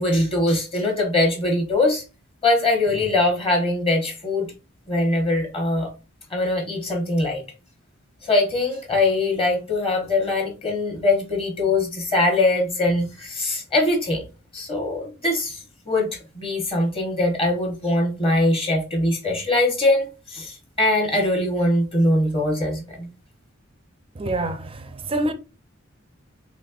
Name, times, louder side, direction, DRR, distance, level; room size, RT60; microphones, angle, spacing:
voice 1, 0.0-2.0 2.4-4.5 4.9-5.9 6.3-7.4 8.2-14.2 14.5-16.1 16.3-23.1, left 2 dB, 25° left, 0.9 m, -22 dB
voice 2, 24.2-25.3, right 1 dB, 25° right, 0.4 m, -26 dB
4.1 x 3.0 x 2.4 m
head